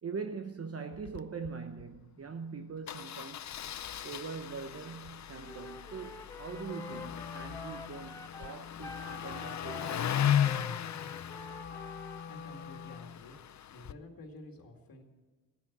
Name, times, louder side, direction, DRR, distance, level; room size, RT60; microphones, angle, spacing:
voice 1, 0.0-3.5 4.0-10.1, right 5 dB, 40° right, 0.8 m, -42 dB
Engine starting, 0.9-1.2 1.4-1.5 1.8-2.0 2.9-13.9, left 10 dB, 50° left, 0.5 m, -36 dB
Wind instrument woodwind instrument, 5.4-12.2, left 2 dB, 10° left, 0.5 m, -48 dB
Wind instrument woodwind instrument 2, 6.5-13.2, left 6 dB, 25° left, 1.0 m, -46 dB
voice 2, 12.1-13.4 13.7-15.0, left 2 dB, 75° left, 2.3 m, -50 dB
15.5 x 10.0 x 7.3 m
wide cardioid pair, 105°, 35 cm